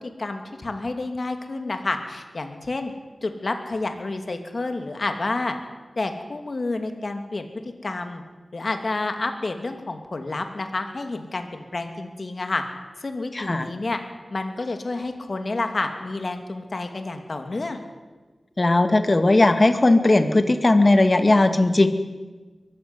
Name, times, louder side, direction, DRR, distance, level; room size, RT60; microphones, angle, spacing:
voice 1, 0.0-2.9 3.2-5.5 6.0-8.2 8.5-12.6 13.0-14.0 14.3-17.8, left 2 dB, 55° left, 6 dB, 2.8 m, -29 dB
voice 2, 13.3-13.7 18.6-21.9, left 2 dB, 40° left, 8 dB, 2.1 m, -17 dB
23.0 x 14.0 x 9.8 m, 1.3 s
wide cardioid pair, 65°, 0 cm